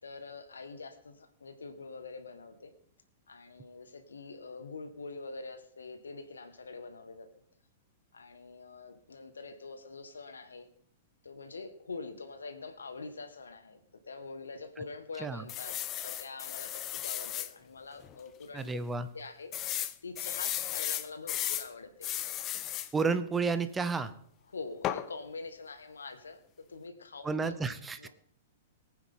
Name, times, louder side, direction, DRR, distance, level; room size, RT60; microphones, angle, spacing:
voice 1, 0.0-2.7 3.3-7.3 8.1-10.7 11.2-13.8 14.1-18.7 19.1-22.1 24.5-26.4 26.7-27.6 28.0-28.1, left 4 dB, 75° left, 9 dB, 1.7 m, -45 dB
sound 1, 15.5-17.5 18.0-18.2 18.4-18.5 19.5-21.7 22.0-22.9 24.8-25.1, left 12 dB, 30° left, 0.8 m, -35 dB
voice 2, 18.5-19.1 22.9-24.1 27.2-28.1, right 4 dB, 15° right, 12 dB, 0.9 m, -31 dB
22.0 x 9.6 x 3.8 m, 0.63 s
figure-of-eight pair, 100°, 0 cm